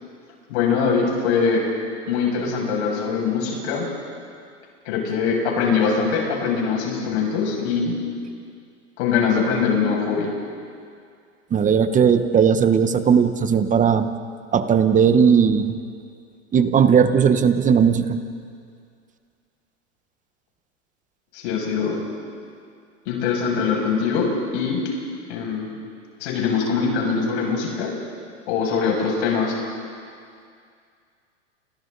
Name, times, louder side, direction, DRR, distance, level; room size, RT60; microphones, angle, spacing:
voice 1, 0.5-1.6 2.1-3.9 4.9-7.9 9.0-10.3 21.3-22.0 23.1-24.8 25.3-25.7 26.2-27.9 28.5-29.6, left 5 dB, 60° left, -1 dB, 7.2 m, -22 dB
voice 2, 11.5-14.1 14.5-15.8 16.5-18.2, right 7 dB, 20° right, 10 dB, 1.2 m, -17 dB
29.5 x 27.0 x 4.1 m, 2.3 s
hypercardioid pair, 120°, 37 cm